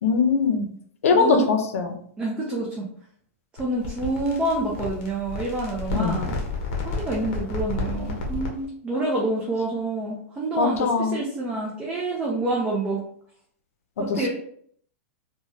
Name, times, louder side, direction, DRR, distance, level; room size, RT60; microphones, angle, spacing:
voice 1, 0.0-0.7 1.0-1.9 5.9-6.2 10.6-11.1 14.1-14.3, left 5 dB, 85° left, 6 dB, 0.6 m, -21 dB
voice 2, 1.1-1.5 2.2-2.9 3.5-6.4 6.8-13.0 14.0-14.3, right 2 dB, 15° right, -4 dB, 0.5 m, -27 dB
sound 1, 3.6-8.6, left 3 dB, 50° left, 0.8 m, -31 dB
3.1 x 2.2 x 2.7 m, 0.62 s
supercardioid pair, 155°, 8 cm